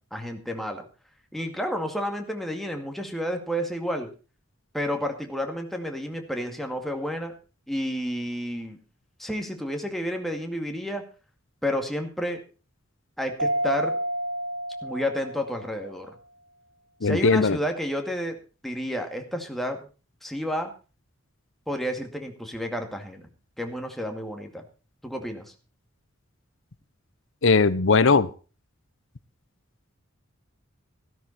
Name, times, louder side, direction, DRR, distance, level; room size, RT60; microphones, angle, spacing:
voice 1, 0.1-0.9 1.3-4.1 4.7-7.3 7.7-8.8 9.2-11.0 11.6-12.4 13.2-13.9 14.8-16.2 17.0-18.4 18.6-19.8 20.2-20.7 21.7-23.2 23.6-24.6 25.0-25.5, equal, ahead, 3 dB, 2.1 m, -30 dB
Mallet percussion, 13.4-15.9, right 1 dB, 65° right, 1.7 m, -29 dB
voice 2, 17.0-17.6 27.4-28.3, left 4 dB, 65° left, 17 dB, 0.8 m, -19 dB
14.0 x 12.5 x 4.2 m, 0.34 s
head